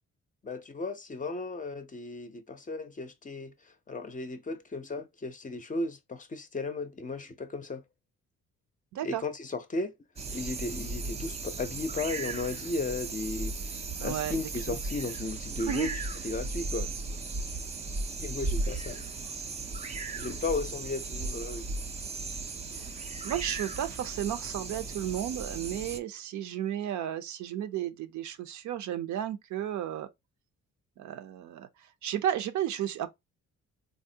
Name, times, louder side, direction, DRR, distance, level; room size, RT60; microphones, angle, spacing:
voice 1, 0.4-3.5 3.9-7.8 9.0-9.9 10.3-13.5 14.0-15.9 16.2-16.9 18.2-19.0 20.2-21.7, left 3 dB, 25° left, 0.5 m, -35 dB
voice 2, 8.9-9.2 14.0-14.8 15.7-16.0 22.7-23.0 23.2-30.1 31.0-31.7 32.0-33.1, right 11 dB, 70° right, 0.5 m, -33 dB
sound 1, 10.2-26.0, right 3 dB, 25° right, 0.4 m, -36 dB
3.5 x 2.1 x 2.7 m
cardioid pair, 90°, 30 cm